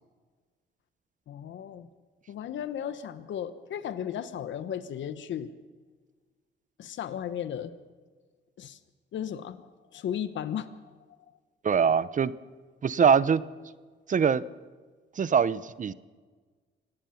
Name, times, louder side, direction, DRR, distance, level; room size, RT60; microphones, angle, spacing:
voice 1, 1.3-1.9 2.3-5.5 6.8-7.7 8.6-8.8 9.1-9.7 9.9-10.8, left 9 dB, 70° left, 12 dB, 1.2 m, -35 dB
voice 2, 11.6-12.3 12.8-13.4 14.1-14.4 15.2-15.9, right 6 dB, 40° right, 17 dB, 0.8 m, -23 dB
25.0 x 18.0 x 5.8 m, 1.4 s
cardioid pair, 90°, 20 cm